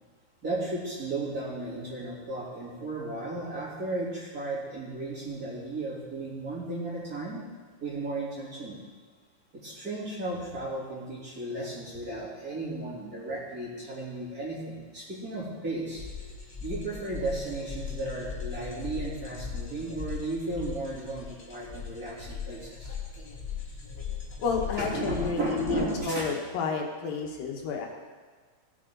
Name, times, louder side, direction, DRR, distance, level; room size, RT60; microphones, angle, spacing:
voice 1, 0.4-7.4 7.8-8.8 9.5-16.0 16.6-22.9 24.8-26.3, right 2 dB, 25° right, -9 dB, 3.3 m, -34 dB
sound 1, 15.9-26.0, left 6 dB, 30° left, 1.2 m, -39 dB
voice 2, 24.4-27.9, left 5 dB, 80° left, 1 dB, 3.0 m, -31 dB
17.5 x 8.4 x 3.9 m, 1.5 s
omnidirectional pair, 4.0 m